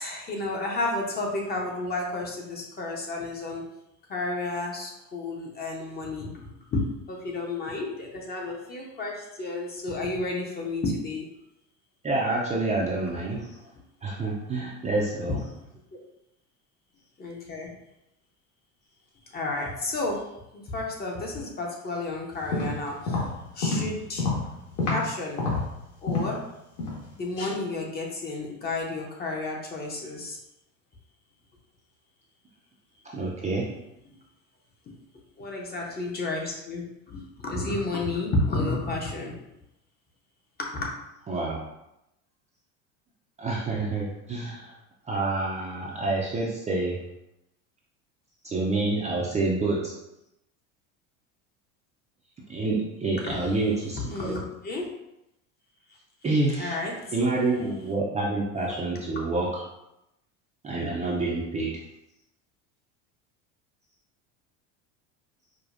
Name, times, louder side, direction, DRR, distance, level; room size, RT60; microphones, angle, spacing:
voice 1, 0.0-3.6 4.1-11.3 17.2-17.7 19.3-20.2 20.5-23.2 23.5-24.3 24.9-25.4 26.0-26.4 27.1-30.4 35.4-39.3 40.6-41.0 53.3-53.4 54.1-54.9 56.6-57.1, left 2 dB, 25° left, -1 dB, 0.8 m, -31 dB
voice 2, 12.0-13.6 14.0-15.4 33.1-33.7 41.3-41.6 43.4-44.7 45.0-47.0 48.4-49.9 52.5-54.4 56.2-56.8 57.1-59.6 60.6-61.7, right 2 dB, 20° right, -4 dB, 0.5 m, -27 dB
sound 1, 22.3-25.1 25.4-26.4 26.8-27.1 27.4-27.5, left 3 dB, 50° left, 1.4 m, -28 dB
4.9 x 2.2 x 2.5 m, 0.87 s
supercardioid pair, 110°, 38 cm